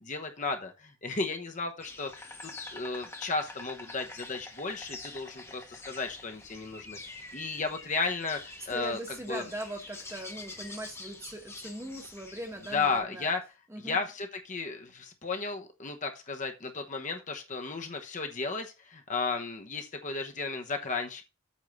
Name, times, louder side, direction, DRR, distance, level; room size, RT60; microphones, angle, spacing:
voice 1, 0.0-9.5 12.7-13.4 13.8-21.2, left 4 dB, 35° left, 1.0 m, -34 dB
Insect, 1.8-13.0, left 3 dB, 10° left, 1.0 m, -46 dB
voice 2, 8.7-13.3 13.7-14.0, right 1 dB, 10° right, 1.2 m, -40 dB
8.4 x 3.6 x 6.5 m
head